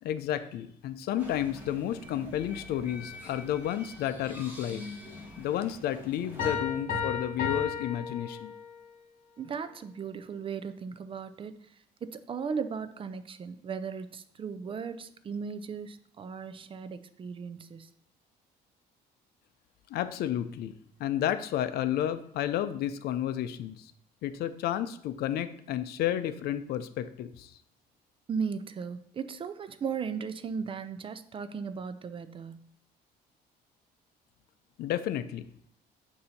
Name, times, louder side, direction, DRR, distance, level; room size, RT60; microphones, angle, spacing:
voice 1, 0.0-4.9 5.4-8.5 19.9-20.7 21.0-23.9 24.2-27.5 34.8-35.7, left 11 dB, 70° left, 12 dB, 0.5 m, -31 dB
sound 1, 1.2-6.6, left 2 dB, 10° right, 1.5 m, -45 dB
Piano, 6.4-8.9, left 6 dB, 50° left, 1.8 m, -33 dB
voice 2, 9.4-11.6 12.0-17.9 28.3-32.7, right 6 dB, 30° right, 12 dB, 0.4 m, -37 dB
6.6 x 2.7 x 5.7 m, 0.66 s
cardioid pair, 110°, 17 cm